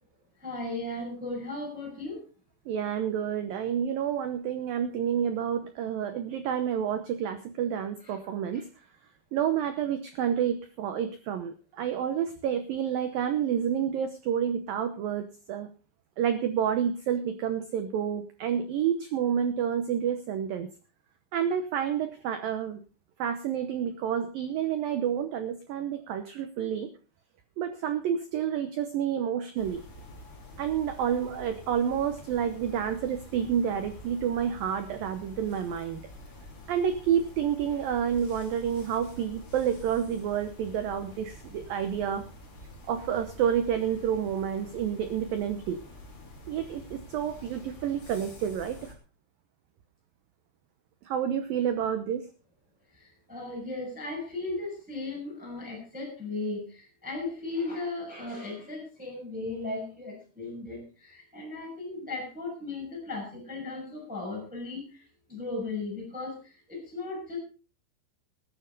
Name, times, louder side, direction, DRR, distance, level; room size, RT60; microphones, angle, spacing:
voice 1, 0.4-2.2 8.0-8.2 8.5-8.6 52.9-65.0 65.3-67.4, left 2 dB, ahead, -2 dB, 5.7 m, -36 dB
voice 2, 2.7-8.7 9.3-15.7 16.2-20.7 21.3-22.8 23.2-26.9 27.6-29.8 30.6-36.0 36.7-42.2 42.9-45.8 46.5-48.9 51.1-52.2, right 8 dB, 85° right, 9 dB, 2.0 m, -29 dB
sound 1, 29.6-49.0, left 1 dB, 30° left, 3.1 m, -47 dB
20.0 x 10.0 x 3.9 m, 0.34 s
omnidirectional pair, 5.5 m